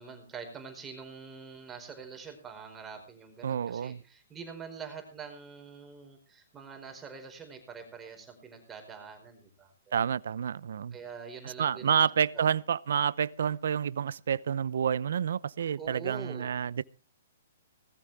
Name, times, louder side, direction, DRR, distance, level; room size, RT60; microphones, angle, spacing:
voice 1, 0.0-10.0 10.9-12.1 12.3-12.5 15.8-16.7, right 5 dB, 15° right, 4.8 m, -45 dB
voice 2, 3.4-4.0 9.9-11.0 11.6-16.8, right 8 dB, 70° right, 0.7 m, -29 dB
19.5 x 14.5 x 3.5 m
hypercardioid pair, 135°, 0 cm